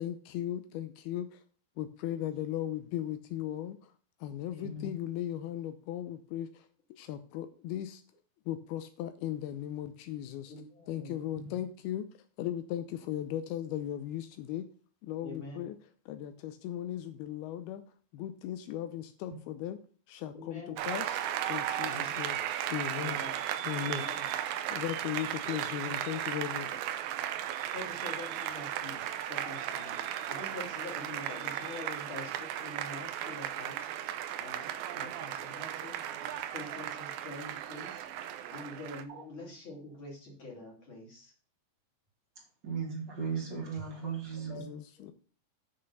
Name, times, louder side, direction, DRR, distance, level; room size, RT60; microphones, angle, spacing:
voice 1, 0.0-1.4 1.8-3.9 4.2-8.0 8.5-10.5 10.9-14.7 15.0-15.8 16.1-17.8 18.1-19.8 20.1-21.2 21.5-22.4 22.7-23.2 23.7-24.0 24.7-26.9 44.5-45.1, left 11 dB, 90° left, 9 dB, 2.2 m, -37 dB
voice 2, 10.5-11.2 15.2-15.7 20.2-20.8 21.8-22.3 22.9-23.3 23.8-24.2 27.7-33.9 34.4-38.0 38.5-41.3 44.0-44.6, left 2 dB, 30° left, -2 dB, 3.0 m, -46 dB
Applause, 20.8-39.0, right 11 dB, 85° right, 2.1 m, -36 dB
voice 3, 42.6-44.7, right 5 dB, 35° right, 0 dB, 2.2 m, -37 dB
8.3 x 6.5 x 5.4 m, 0.41 s
omnidirectional pair, 5.2 m